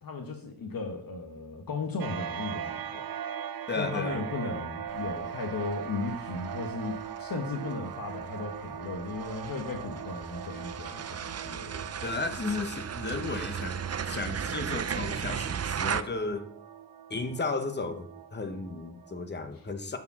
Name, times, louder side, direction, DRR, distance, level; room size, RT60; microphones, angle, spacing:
voice 1, 0.0-3.0 3.8-11.9, left 3 dB, 80° left, 1.2 m, -36 dB
sound 1, 2.0-19.2, right 9 dB, 90° right, 0.7 m, -40 dB
voice 2, 3.7-4.2 12.0-16.5 17.1-20.0, left 3 dB, 30° left, 1.0 m, -34 dB
sound 2, 4.9-16.0, right 7 dB, 45° right, 0.5 m, -37 dB
9.3 x 4.9 x 6.0 m
wide cardioid pair, 80°, 35 cm